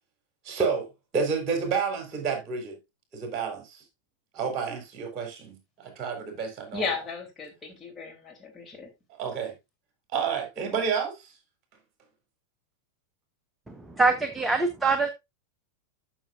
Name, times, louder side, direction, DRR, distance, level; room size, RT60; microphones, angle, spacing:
voice 1, 0.4-0.9 1.1-2.8 3.1-3.8 4.3-7.0 9.1-9.5 10.1-11.3, right 5 dB, 30° right, 4.3 m, -30 dB
voice 2, 6.7-8.9, left 5 dB, 20° left, 3.3 m, -35 dB
voice 3, 13.7-15.1, right 3 dB, 10° right, 1.0 m, -24 dB
12.5 x 6.8 x 2.6 m
figure-of-eight pair, 90°, 0 cm